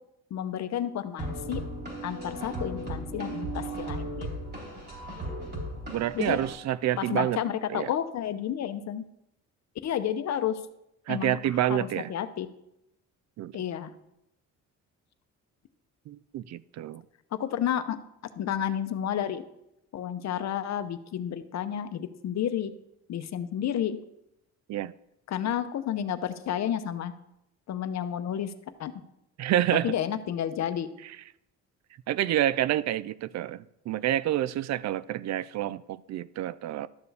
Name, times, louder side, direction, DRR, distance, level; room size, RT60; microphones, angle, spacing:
voice 1, 0.3-1.6 2.0-4.3 6.1-6.4 7.0-9.0 9.8-10.6 11.1-12.5 13.5-13.9 17.3-18.0 18.4-19.4 19.9-22.7 23.1-24.0 25.3-27.1 27.7-28.5 28.8-28.9 29.8-30.9, left 10 dB, 60° left, 0.8 m, -31 dB
sound 1, 1.2-6.5, right 1 dB, 35° right, 3.2 m, -36 dB
voice 2, 5.9-7.4 7.7-7.9 11.1-12.1 13.4-13.5 16.1-17.0 24.7-24.9 29.4-29.9 31.0-31.1 32.1-36.9, right 12 dB, 65° right, 0.4 m, -28 dB
12.5 x 6.8 x 3.4 m
cardioid pair, 90°, 30 cm